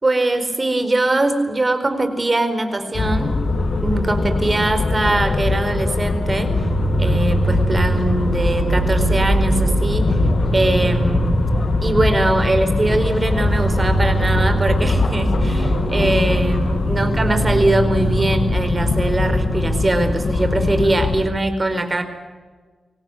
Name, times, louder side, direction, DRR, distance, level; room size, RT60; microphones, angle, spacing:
voice 1, 0.0-3.4 3.8-6.6 7.0-10.2 10.5-11.4 11.8-22.0, right 2 dB, 35° right, 8 dB, 4.7 m, -21 dB
sound 1, 2.9-21.3, left 3 dB, 65° left, 2.5 m, -21 dB
sound 2, 6.4-20.1, right 5 dB, 65° right, 0.7 m, -25 dB
24.5 x 18.5 x 9.6 m, 1.4 s
cardioid pair, 45°, 0 cm